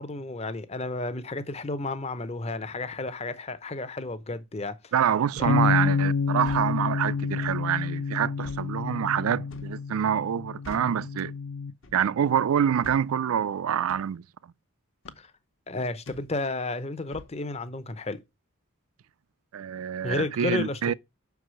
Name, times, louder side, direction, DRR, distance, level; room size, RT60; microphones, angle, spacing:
voice 1, 0.0-4.9 5.4-5.7 15.2-15.3 15.7-18.2 20.0-20.9, left 2 dB, 30° left, 0.7 m, -32 dB
voice 2, 4.9-11.3 11.9-14.2 19.5-20.9, right 8 dB, 75° right, 0.4 m, -26 dB
sound 1, 5.4-5.7 6.4-6.7 7.4-7.6 8.4-8.7 9.5-9.8 10.6-11.0 11.8-12.1 12.8-13.1 13.9-14.1 15.0-15.2 16.1-16.3 17.1-17.4, left 1 dB, 60° left, 1.1 m, -45 dB
sound 2, 5.5-11.7, left 5 dB, 90° left, 0.5 m, -28 dB
6.1 x 4.7 x 6.2 m
head